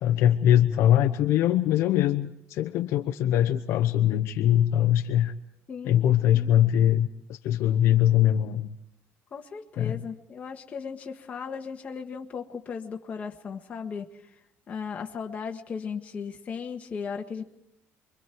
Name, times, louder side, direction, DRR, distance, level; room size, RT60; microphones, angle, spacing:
voice 1, 0.0-5.3 5.8-8.7 9.8-10.0, left 11 dB, 60° left, 6 dB, 0.9 m, -22 dB
voice 2, 5.7-6.0 6.3-6.6 9.3-14.2 14.7-17.4, left 6 dB, 25° left, 2 dB, 1.6 m, -36 dB
28.0 x 23.5 x 4.7 m, 0.78 s
cardioid pair, 175°, 5 cm